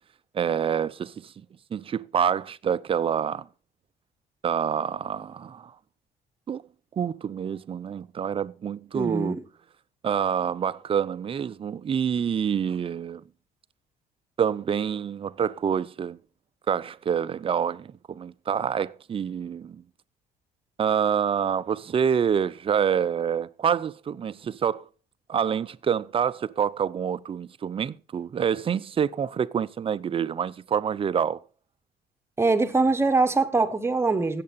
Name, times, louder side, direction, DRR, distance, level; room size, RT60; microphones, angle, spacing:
voice 1, 0.3-1.3 1.7-3.5 4.4-5.7 6.5-6.6 7.0-9.4 10.0-13.2 14.4-16.2 16.7-19.8 20.8-24.9 25.3-31.4, right 7 dB, 30° right, 0.6 m, -27 dB
voice 2, 8.9-9.3 32.4-34.4, right 3 dB, 15° right, 1.2 m, -23 dB
15.5 x 7.7 x 4.1 m
cardioid pair, 110°, 17 cm